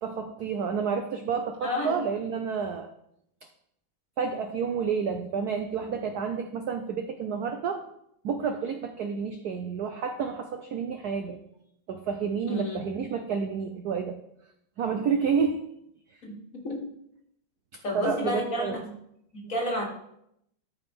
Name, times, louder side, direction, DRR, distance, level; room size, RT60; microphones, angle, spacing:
voice 1, 0.0-2.9 4.2-7.8 8.2-11.4 11.9-14.2 14.8-15.6 17.7-18.8, right 6 dB, 70° right, 6 dB, 0.9 m, -30 dB
voice 2, 1.6-1.9 12.5-12.8 16.2-16.8 17.8-18.9 19.3-19.8, left 1 dB, 40° left, 0 dB, 1.6 m, -31 dB
13.5 x 4.8 x 3.5 m, 0.76 s
omnidirectional pair, 2.3 m